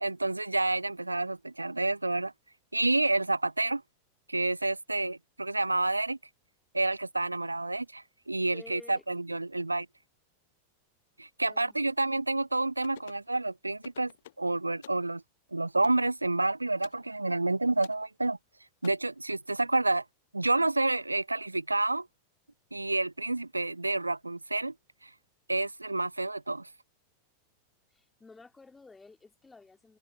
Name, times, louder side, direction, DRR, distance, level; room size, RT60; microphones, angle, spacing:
voice 1, 0.0-2.3 2.7-3.8 4.3-6.2 6.7-9.9 11.2-14.1 14.4-15.2 15.5-18.4 18.8-20.0 20.3-22.1 22.7-24.7 25.0-25.1 25.5-26.7, right 2 dB, 85° right, 0.6 m, -29 dB
voice 2, 8.4-9.0 9.5-9.7 11.4-11.9 27.9-30.0, left 3 dB, 10° left, 3.1 m, -52 dB
sound 1, 12.8-13.3 13.8-14.5 14.8-15.1 15.8-16.1 16.8-17.0 17.8-18.0 18.8-18.9, left 13 dB, 60° left, 1.1 m, -50 dB
open air
figure-of-eight pair, 90°, 0 cm